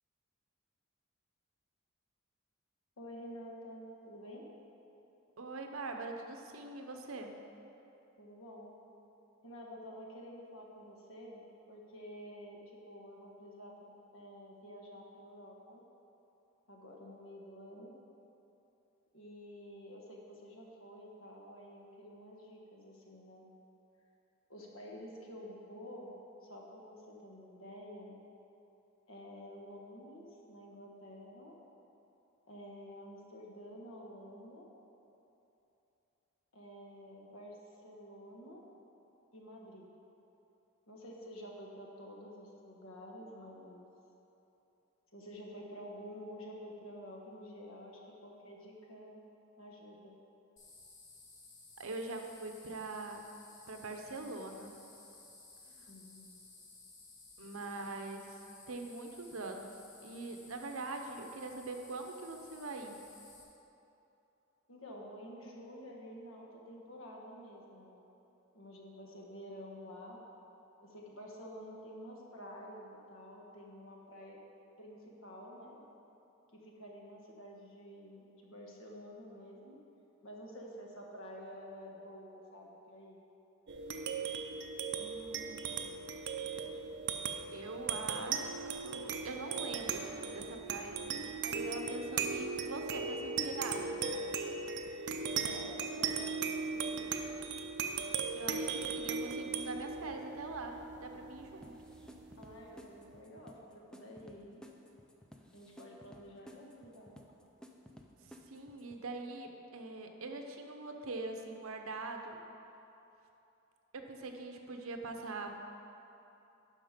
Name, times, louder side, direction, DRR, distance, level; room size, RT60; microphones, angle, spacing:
voice 1, 3.0-4.4 8.2-8.8 9.4-15.8 16.7-18.0 19.1-23.5 24.5-26.1 26.4-28.2 29.1-31.6 32.5-34.7 36.5-38.6 39.3-39.9 40.9-43.9 45.1-49.2 49.6-50.1 55.7-56.4 64.7-68.0 68.5-70.2 70.8-74.4 74.8-75.8 76.5-79.8 80.2-83.2 95.4-97.1 102.4-104.6 105.5-107.2, equal, 70° left, -1 dB, 1.4 m, -50 dB
voice 2, 5.4-7.4 51.8-53.2 53.7-54.7 57.4-58.4 58.7-63.0 85.0-85.6 87.5-90.0 90.3-94.0 98.3-101.7 108.2-112.4 113.9-115.6, right 3 dB, 80° right, 4 dB, 0.8 m, -43 dB
sound 1, 50.6-63.4, left 3 dB, 40° left, 1.4 m, -57 dB
sound 2, 83.7-102.5, right 5 dB, 55° right, 0.5 m, -38 dB
sound 3, 101.6-109.0, equal, 5° left, 0.4 m, -56 dB
11.5 x 4.9 x 5.1 m, 2.9 s
head